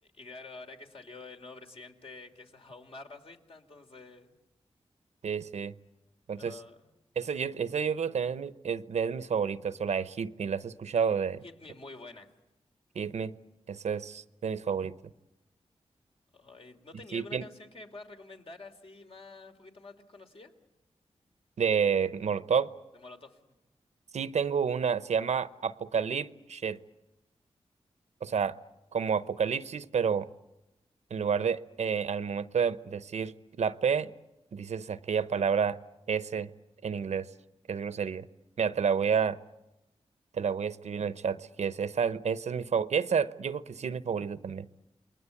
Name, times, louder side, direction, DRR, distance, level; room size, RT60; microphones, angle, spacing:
voice 1, 0.0-4.3 6.3-6.9 11.4-12.3 16.3-20.5 22.9-23.4, left 3 dB, 55° left, 5 dB, 3.2 m, -48 dB
voice 2, 5.2-5.7 6.3-6.6 7.2-11.4 12.9-13.3 13.7-14.9 17.1-17.4 21.6-22.7 24.1-26.8 28.2-28.6 28.9-30.3 31.1-34.1 34.5-35.8 36.1-36.5 36.8-37.3 37.7-38.2 38.6-39.4 40.3-44.7, right 6 dB, 80° right, 14 dB, 0.8 m, -30 dB
28.5 x 21.5 x 8.4 m, 0.97 s
cardioid pair, 70°, 11 cm